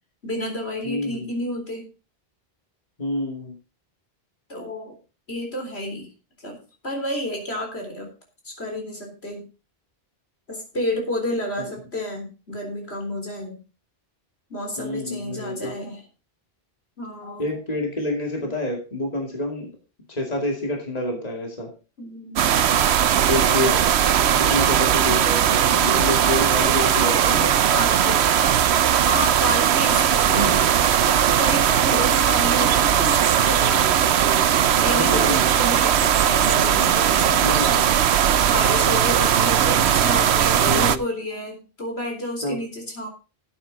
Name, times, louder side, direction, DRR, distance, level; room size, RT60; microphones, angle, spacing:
voice 1, 0.2-1.9 4.5-5.0 5.3-6.1 6.4-6.6 6.8-8.1 8.4-9.5 10.5-13.6 14.5-16.1 17.0-17.6 22.0-22.6 23.1-23.6 26.6-28.6 29.0-30.9 31.4-37.9 38.5-43.1, left 1 dB, 80° left, 2 dB, 4.1 m, -30 dB
voice 2, 0.8-1.3 3.0-3.5 14.8-15.7 17.4-19.7 20.1-21.7 23.3-23.8 24.4-27.6 30.3-30.6 34.9-35.4 37.4-37.8 40.6-41.0 42.4-42.6, left 1 dB, 40° left, 1 dB, 2.5 m, -27 dB
sound 1, 22.4-41.0, right 9 dB, 85° right, 1.0 m, -19 dB
12.5 x 8.6 x 4.1 m, 0.32 s
omnidirectional pair, 1.1 m